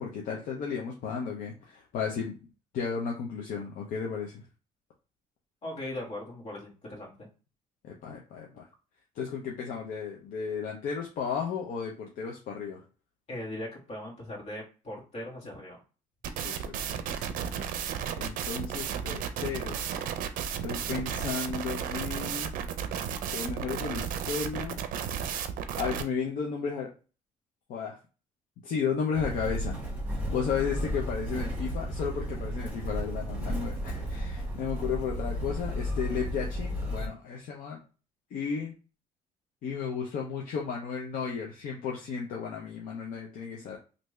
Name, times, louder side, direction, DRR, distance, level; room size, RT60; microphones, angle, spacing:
voice 1, 0.0-2.4 2.7-4.4 7.8-8.7 9.2-12.8 16.4-17.3 18.2-20.0 20.4-22.5 23.3-24.8 25.8-26.9 27.7-28.0 28.6-29.8 30.1-37.8 38.3-38.7 39.6-43.8, left 6 dB, 70° left, -1 dB, 0.7 m, -34 dB
voice 2, 5.6-7.3 13.3-15.8, left 1 dB, 50° left, -2 dB, 1.6 m, -39 dB
sound 1, 16.2-26.0, right 8 dB, 70° right, 0.5 m, -33 dB
Motor vehicle (road), 29.1-37.1, equal, 10° right, 1.4 m, -33 dB
3.3 x 2.7 x 3.1 m, 0.34 s
cardioid pair, 115°, 14 cm